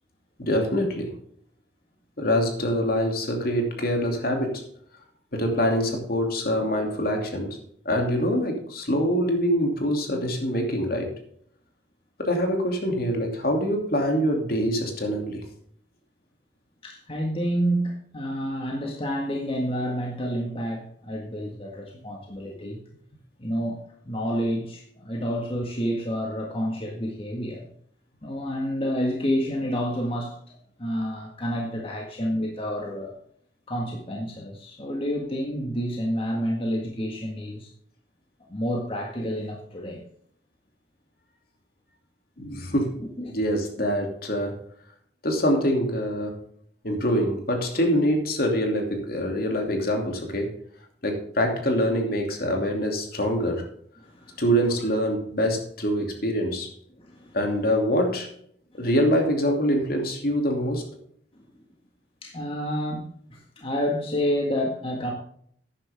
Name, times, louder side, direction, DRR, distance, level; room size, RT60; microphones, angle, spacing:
voice 1, 0.4-1.1 2.2-4.6 5.3-7.6 7.8-11.1 12.2-15.4 42.4-43.0 43.3-44.6 45.2-46.3 46.8-50.5 51.0-53.7 54.4-56.7 57.3-58.3 58.7-60.9, equal, 55° left, 3 dB, 2.7 m, -25 dB
voice 2, 16.8-22.8 23.4-27.7 28.2-33.1 33.7-37.7 38.5-40.0 43.0-43.3 54.0-54.4 57.0-57.4 58.7-58.9 62.2-65.1, equal, 30° left, 0 dB, 1.7 m, -29 dB
12.5 x 10.0 x 3.6 m, 0.64 s
head